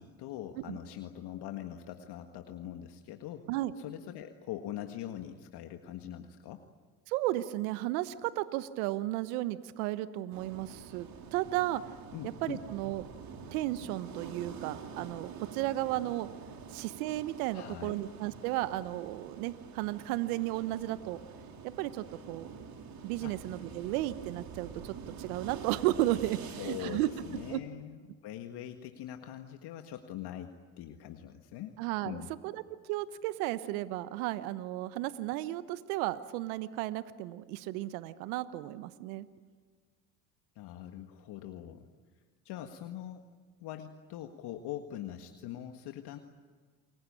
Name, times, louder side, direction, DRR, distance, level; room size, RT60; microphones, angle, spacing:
voice 1, 0.0-3.5 3.8-6.6 12.1-12.6 17.5-18.0 23.2-23.4 26.6-31.8 32.0-32.3 40.5-41.9 42.4-43.2 43.6-46.2, left 11 dB, 65° left, 6 dB, 1.8 m, -42 dB
voice 2, 7.1-11.8 12.2-13.0 13.5-16.3 16.7-21.2 21.6-22.5 23.0-27.1 27.5-27.6 31.8-32.6 32.9-39.3, right 16 dB, 80° right, 14 dB, 1.1 m, -34 dB
sound 1, 10.3-27.6, right 5 dB, 55° right, 4.3 m, -47 dB
29.0 x 22.0 x 8.8 m, 1.5 s
hypercardioid pair, 70°, 43 cm